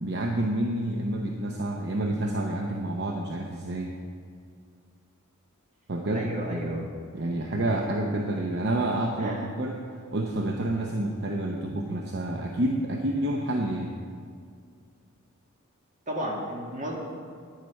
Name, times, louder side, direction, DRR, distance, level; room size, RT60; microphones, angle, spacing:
voice 1, 0.0-3.9 5.9-6.9 7.1-9.8 10.1-13.9, right 1 dB, 55° right, 1 dB, 0.8 m, -29 dB
voice 2, 6.1-6.8 9.2-9.5 16.1-17.0, right 1 dB, 35° right, -2 dB, 1.9 m, -33 dB
11.5 x 9.1 x 4.6 m, 2.2 s
head